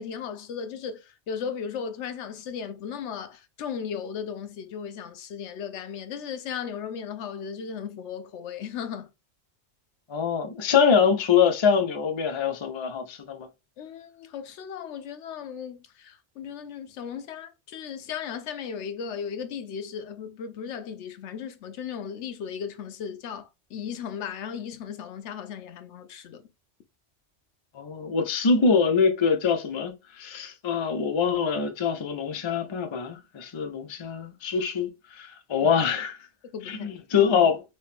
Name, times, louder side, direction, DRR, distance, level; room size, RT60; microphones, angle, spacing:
voice 1, 0.0-9.1 13.8-26.5 35.6-35.7 36.5-36.9, left 7 dB, 75° left, 0.9 m, -36 dB
voice 2, 10.1-13.5 27.7-36.2 36.7-37.6, left 6 dB, 40° left, 0.4 m, -24 dB
3.0 x 2.9 x 3.3 m
omnidirectional pair, 1.2 m